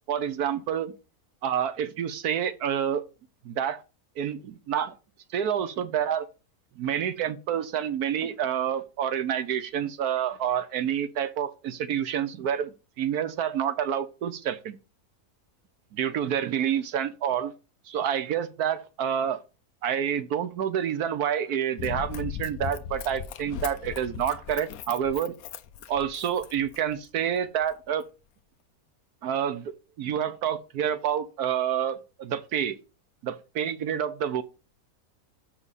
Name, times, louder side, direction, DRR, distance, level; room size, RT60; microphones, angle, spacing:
voice 1, 0.1-0.9 1.4-3.0 3.4-3.8 4.2-4.9 5.3-6.3 6.8-14.8 15.9-17.5 17.9-19.4 19.8-25.3 25.9-28.0 29.2-29.7 30.0-32.8 33.2-34.4, right 9 dB, 75° right, 1.3 m, -28 dB
Run, 21.8-27.1 27.6-27.7, left 9 dB, 70° left, 1.0 m, -38 dB
6.1 x 6.0 x 4.1 m
omnidirectional pair, 1.6 m